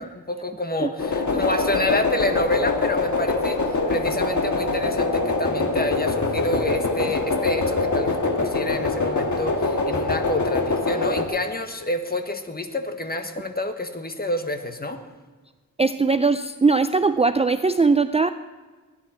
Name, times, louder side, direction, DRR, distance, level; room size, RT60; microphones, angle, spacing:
voice 1, 0.0-15.0, left 1 dB, 25° left, 7 dB, 1.4 m, -28 dB
sound 1, 1.0-11.3, left 3 dB, 55° left, 1.7 m, -24 dB
voice 2, 15.8-18.3, right 4 dB, 20° right, 10 dB, 0.4 m, -20 dB
19.0 x 10.0 x 4.4 m, 1.4 s
cardioid pair, 70°, 34 cm